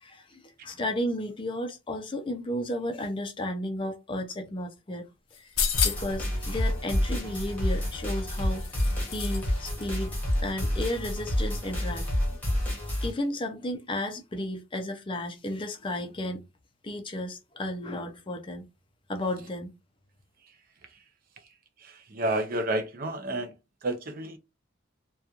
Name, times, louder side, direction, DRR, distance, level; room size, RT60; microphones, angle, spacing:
voice 1, 0.0-5.1 5.4-5.5 5.8-10.1 10.4-12.1 12.7-16.4 16.8-18.7 19.1-19.7, left 1 dB, 25° left, 0.4 m, -33 dB
sound 1, 5.3-6.2 7.7-9.5 9.8-9.9, left 7 dB, 80° left, 0.5 m, -31 dB
sound 2, 5.7-13.1, left 1 dB, 10° left, 1.1 m, -29 dB
voice 2, 21.8-23.5 23.8-24.4, right 1 dB, 45° right, 0.5 m, -30 dB
2.9 x 2.2 x 2.4 m
head